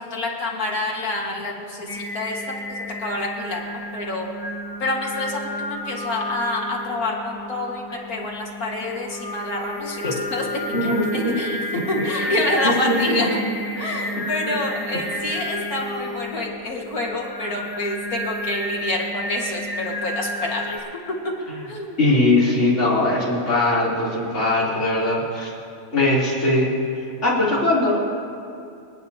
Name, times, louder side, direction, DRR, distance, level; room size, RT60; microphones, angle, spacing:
voice 1, 0.0-2.4 2.7-4.3 4.8-10.5 10.8-13.4 13.8-20.7 21.7-21.9, left 2 dB, 85° left, -1 dB, 2.3 m, -27 dB
Singing, 1.9-20.8, left 1 dB, 15° left, 1.1 m, -31 dB
voice 2, 10.7-11.0 12.0-12.4 12.8-13.2 14.4-14.6 21.5-21.6 22.0-25.5 25.9-26.7 27.2-28.0, left 2 dB, 55° left, -8 dB, 3.8 m, -20 dB
27.5 x 9.8 x 2.9 m, 2.6 s
omnidirectional pair, 1.5 m